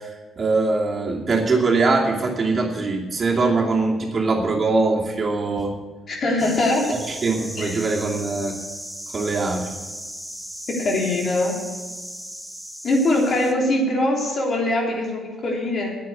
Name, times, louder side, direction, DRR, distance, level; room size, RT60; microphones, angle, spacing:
voice 1, 0.0-5.7 7.1-8.6 9.1-9.7, right 3 dB, 40° right, -2 dB, 2.6 m, -22 dB
voice 2, 6.1-6.9 10.7-11.6 12.8-16.0, left 1 dB, 50° left, -1 dB, 3.4 m, -22 dB
sound 1, 6.4-13.5, equal, ahead, 1.3 m, -36 dB
9.5 x 9.3 x 8.5 m, 1.3 s
cardioid pair, 90°, 0 cm